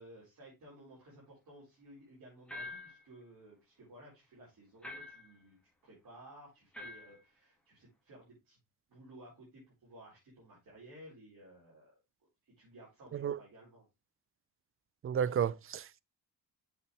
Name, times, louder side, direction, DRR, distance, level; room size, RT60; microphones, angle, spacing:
voice 1, 0.0-5.6 5.8-8.6 8.9-12.0 12.4-13.9, right 1 dB, 60° right, 4.7 m, -56 dB
sound 1, 2.5-3.0 4.8-5.3 6.7-7.2, left 2 dB, 5° left, 1.7 m, -45 dB
voice 2, 15.0-16.0, right 8 dB, 35° right, 0.4 m, -32 dB
7.1 x 6.9 x 3.2 m
cardioid pair, 105°, 39 cm